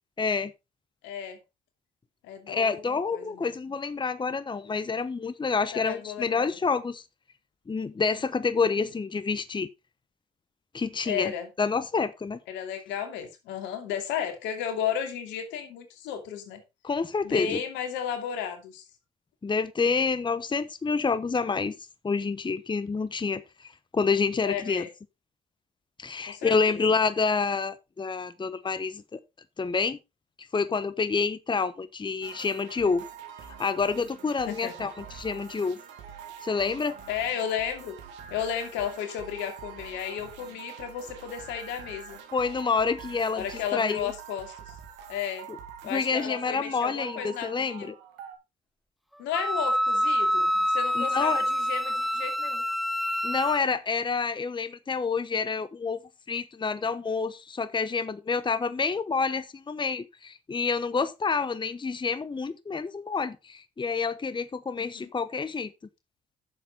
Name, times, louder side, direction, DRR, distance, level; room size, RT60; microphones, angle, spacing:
voice 1, 0.2-0.5 2.5-7.0 7.7-9.7 10.7-11.3 11.6-12.4 16.8-17.6 19.4-21.7 22.0-24.8 26.0-29.2 29.6-30.0 30.5-33.1 33.6-35.8 36.4-37.0 42.3-43.4 43.7-44.1 45.9-48.0 51.0-51.4 53.2-56.0 56.3-65.7, left 4 dB, 25° left, 0.9 m, -28 dB
voice 2, 1.0-1.4 2.2-3.5 5.7-6.5 11.0-11.5 12.5-16.6 17.2-18.8 24.4-24.9 26.3-26.9 34.5-34.9 37.1-38.0 38.3-42.2 43.3-44.7 45.1-45.5 45.8-47.9 49.2-52.6 64.8-65.1, left 8 dB, 80° left, 2.6 m, -34 dB
sound 1, 32.2-48.4, right 8 dB, 80° right, 2.2 m, -45 dB
Wind instrument woodwind instrument, 49.3-53.6, equal, ahead, 0.5 m, -26 dB
10.5 x 7.2 x 4.0 m
hypercardioid pair, 55°, 18 cm